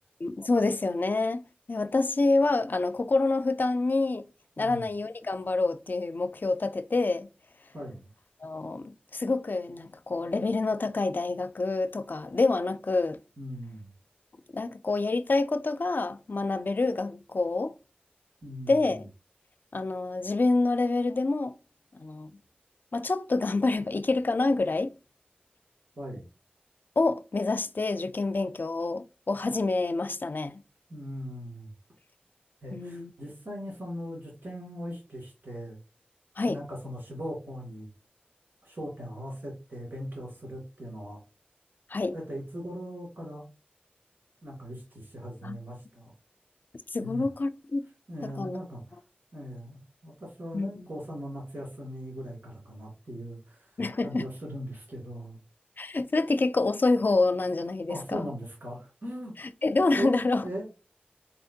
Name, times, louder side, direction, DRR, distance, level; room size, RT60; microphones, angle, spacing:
voice 1, 0.2-4.3 4.6-7.3 8.4-13.2 14.5-17.8 18.7-19.1 19.7-21.6 21.9-22.3 22.9-24.9 27.0-30.6 32.7-33.1 36.4-36.6 41.9-42.1 45.4-45.6 46.9-47.8 48.2-48.6 50.5-50.9 53.8-54.3 55.8-58.3 59.4-60.5, left 3 dB, 70° left, 0.4 m, -27 dB
voice 2, 7.7-8.1 13.4-13.9 18.4-19.1 26.0-26.2 30.9-31.7 32.6-35.8 36.5-37.9 38.6-41.2 42.1-43.5 44.4-46.1 47.0-47.3 48.1-49.0 49.3-55.4 57.9-59.5 60.0-60.2 60.4-60.7, equal, 80° right, 2.3 m, -39 dB
4.2 x 4.2 x 2.7 m
wide cardioid pair, 60°, 3 cm